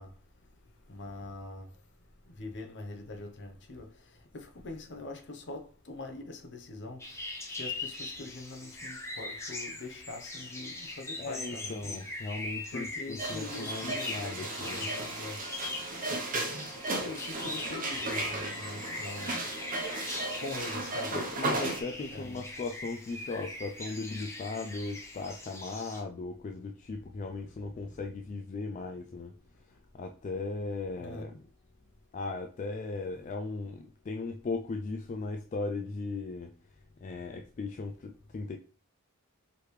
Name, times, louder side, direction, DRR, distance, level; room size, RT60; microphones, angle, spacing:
voice 1, 0.0-12.1 12.7-15.6 16.7-19.4 20.4-21.2 22.1-22.5 27.4-28.0 28.7-28.8 29.5-29.8 31.0-31.4, left 2 dB, 55° left, 0.8 m, -43 dB
sound 1, 7.0-26.0, left 2 dB, 15° left, 0.8 m, -41 dB
voice 2, 11.2-14.9 21.1-29.4 29.9-31.3 32.1-36.6 37.0-38.6, left 3 dB, 35° left, 0.3 m, -37 dB
sound 2, 13.2-21.8, right 2 dB, 40° right, 0.8 m, -35 dB
4.9 x 3.2 x 3.2 m
head